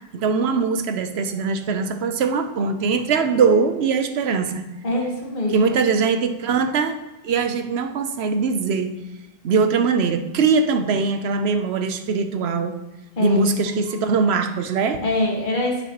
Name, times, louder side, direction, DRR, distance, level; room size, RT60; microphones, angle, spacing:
voice 1, 0.1-4.7 5.5-7.0 7.2-9.0 9.4-12.8 13.2-15.0, right 5 dB, 90° right, 8 dB, 1.0 m, -21 dB
voice 2, 4.8-5.8 13.2-13.4 15.0-15.8, left 2 dB, 55° left, -1 dB, 1.7 m, -24 dB
10.5 x 5.9 x 2.9 m, 1.0 s
omnidirectional pair, 1.0 m